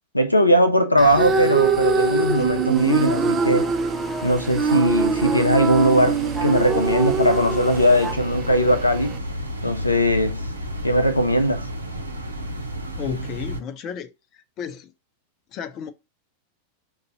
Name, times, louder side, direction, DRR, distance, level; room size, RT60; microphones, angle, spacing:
voice 1, 0.1-3.7 4.2-9.1 9.6-10.4 10.8-11.6, equal, 85° left, 0.4 m, -19 dB
sound 1, 1.0-9.2, right 4 dB, 25° right, 0.5 m, -23 dB
sound 2, 2.7-8.1, right 2 dB, 5° right, 0.9 m, -33 dB
sound 3, 4.6-13.6, equal, 85° right, 0.6 m, -32 dB
voice 2, 13.0-14.9 15.5-15.9, left 7 dB, 35° left, 0.6 m, -33 dB
5.3 x 2.6 x 2.7 m
figure-of-eight pair, 90°, 0 cm